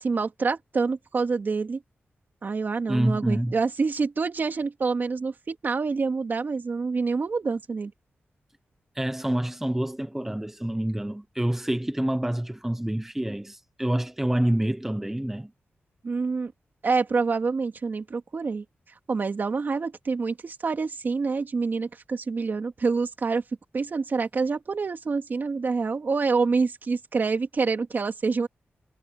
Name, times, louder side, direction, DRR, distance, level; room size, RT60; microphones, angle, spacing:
voice 1, 0.0-1.8 2.4-7.9 16.0-16.5 16.8-18.6 19.1-23.4 23.7-28.5, right 4 dB, 50° right, 2.5 m, -27 dB
voice 2, 2.9-3.6 8.9-15.5, right 1 dB, 10° right, 1.1 m, -27 dB
wide cardioid pair, 120°, 4 cm